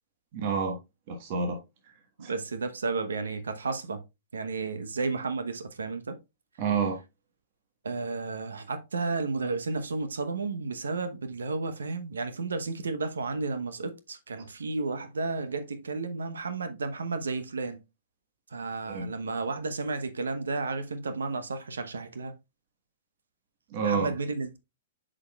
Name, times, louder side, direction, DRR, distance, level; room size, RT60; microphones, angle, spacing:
voice 1, 0.3-0.8 1.1-1.6 2.2-2.3 6.6-7.0 18.9-19.1 23.7-24.1, right 5 dB, 50° right, 1.3 m, -28 dB
voice 2, 2.2-4.0 4.3-6.2 7.8-17.8 18.5-22.3 23.8-24.6, right 3 dB, 85° right, 0.9 m, -32 dB
8.3 x 5.1 x 2.3 m
hypercardioid pair, 120°, 0 cm